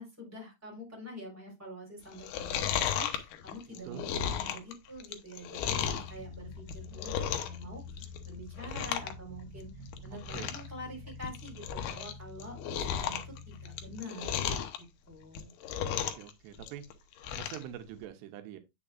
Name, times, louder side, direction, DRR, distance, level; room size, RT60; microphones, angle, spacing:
voice 1, 0.0-15.5, equal, 5° right, 3.6 m, -46 dB
Chewing mastication, 2.1-6.1 6.6-7.6 7.9-8.3 8.6-9.1 9.4-9.5 9.9-10.0 10.2-10.7 11.1-12.1 12.4-14.8 15.2-16.3 16.6-17.6 18.0-18.1, left 9 dB, 75° left, 2.6 m, -34 dB
sound 1, 5.6-14.0, left 4 dB, 20° left, 3.6 m, -47 dB
voice 2, 15.8-16.8 17.4-18.6, right 11 dB, 85° right, 3.0 m, -44 dB
8.8 x 6.7 x 2.5 m
omnidirectional pair, 4.9 m